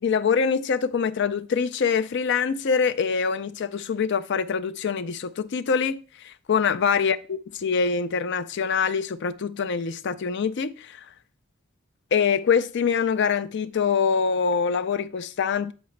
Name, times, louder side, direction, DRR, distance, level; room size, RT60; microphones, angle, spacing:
voice 1, 0.0-11.1 12.1-15.7, left 6 dB, 60° left, 0.4 m, -24 dB
8.0 x 4.9 x 3.2 m
head